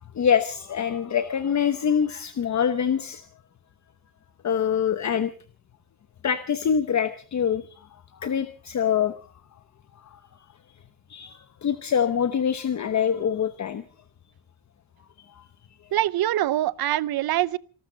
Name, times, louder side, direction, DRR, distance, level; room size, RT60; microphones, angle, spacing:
voice 1, 0.1-3.2 4.4-5.3 6.2-7.7 8.2-9.1 10.1-10.2 11.1-13.8 15.3-15.4, left 8 dB, 50° left, 1.0 m, -25 dB
voice 2, 15.9-17.6, right 13 dB, 75° right, 0.7 m, -24 dB
27.0 x 12.5 x 3.9 m
wide cardioid pair, 130°, 36 cm